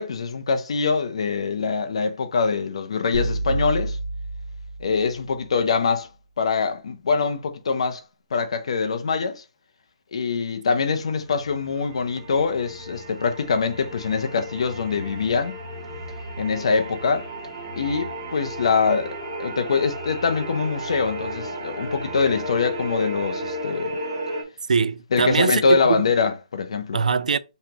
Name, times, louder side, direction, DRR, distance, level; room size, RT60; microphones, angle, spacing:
voice 1, 0.0-4.0 4.8-6.1 6.4-8.0 8.3-9.4 10.1-15.6 16.4-17.3 17.8-24.0 25.1-27.0, left 5 dB, 45° left, 0.7 m, -24 dB
sound 1, 3.1-5.4, right 2 dB, 45° right, 1.3 m, -29 dB
sound 2, 11.0-24.4, equal, 30° right, 1.5 m, -34 dB
voice 2, 24.7-26.1 26.9-27.4, right 5 dB, 70° right, 0.5 m, -22 dB
5.6 x 3.0 x 2.9 m
hypercardioid pair, 175°, 4 cm